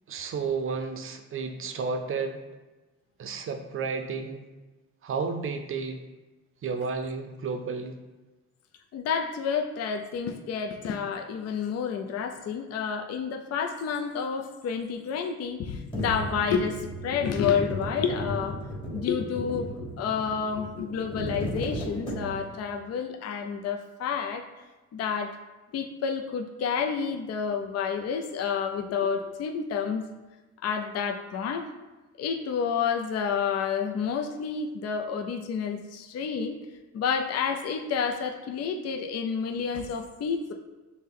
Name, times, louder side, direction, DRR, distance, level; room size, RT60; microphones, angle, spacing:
voice 1, 0.1-2.4 3.2-4.5 5.0-6.0 6.6-8.0, right 5 dB, 45° right, 6 dB, 0.5 m, -32 dB
voice 2, 8.9-18.6 18.9-24.4 24.9-25.4 25.7-30.1 30.6-31.7 32.2-36.6 36.9-40.5, left 6 dB, 55° left, 4 dB, 0.5 m, -29 dB
sound 1, 15.9-22.6, equal, 15° left, 1.4 m, -35 dB
5.8 x 2.2 x 3.6 m, 1.2 s
cardioid pair, 90°, 30 cm